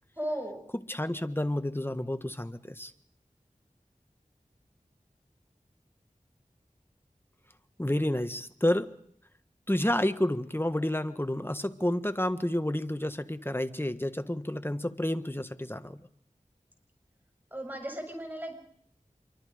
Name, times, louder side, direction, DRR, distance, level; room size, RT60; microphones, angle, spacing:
voice 1, 0.2-0.6 17.5-18.5, right 1 dB, 15° right, 4 dB, 7.4 m, -35 dB
voice 2, 0.9-2.9 7.8-8.9 9.7-16.0, left 1 dB, 15° left, 10 dB, 1.5 m, -30 dB
26.5 x 23.5 x 5.1 m, 0.63 s
wide cardioid pair, 40°, 14 cm